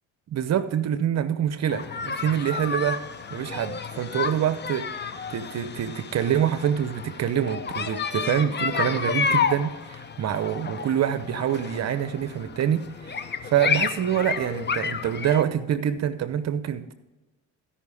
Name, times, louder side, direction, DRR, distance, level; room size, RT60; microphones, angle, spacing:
voice 1, 0.3-3.0 3.3-16.9, right 9 dB, 50° right, 13 dB, 0.7 m, -26 dB
sound 1, 1.7-15.4, left 6 dB, 30° left, 0.8 m, -31 dB
15.0 x 5.7 x 4.8 m, 1.1 s
supercardioid pair, 80°, 34 cm